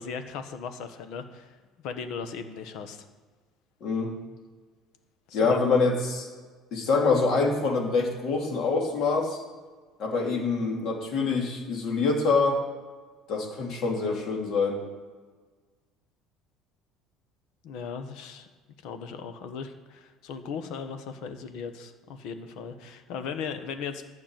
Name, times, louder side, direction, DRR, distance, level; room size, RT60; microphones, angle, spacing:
voice 1, 0.0-1.6 1.8-3.1 5.3-5.6 17.6-18.5 18.8-24.0, left 6 dB, 65° left, 8 dB, 1.3 m, -37 dB
voice 2, 3.8-4.2 5.3-6.3 6.7-9.4 10.0-12.6 13.3-14.8, left 4 dB, 50° left, 0 dB, 3.0 m, -25 dB
11.5 x 6.0 x 9.2 m, 1.4 s
cardioid pair, 150°, 0 cm